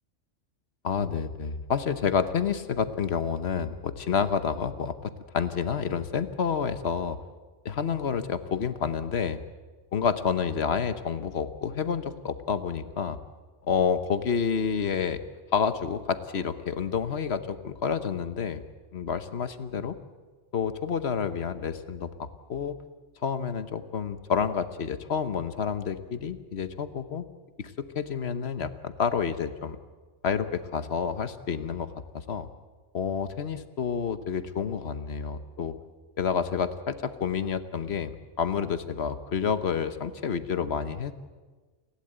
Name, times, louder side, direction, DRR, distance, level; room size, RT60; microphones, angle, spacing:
voice 1, 0.8-7.2 7.6-9.4 9.9-13.2 13.7-15.2 15.5-18.6 18.9-20.0 20.5-22.8 23.2-27.3 27.6-29.8 30.2-32.5 32.9-35.7 36.2-41.1, left 6 dB, 55° left, 12 dB, 1.3 m, -29 dB
29.0 x 12.0 x 8.9 m, 1.3 s
omnidirectional pair, 1.3 m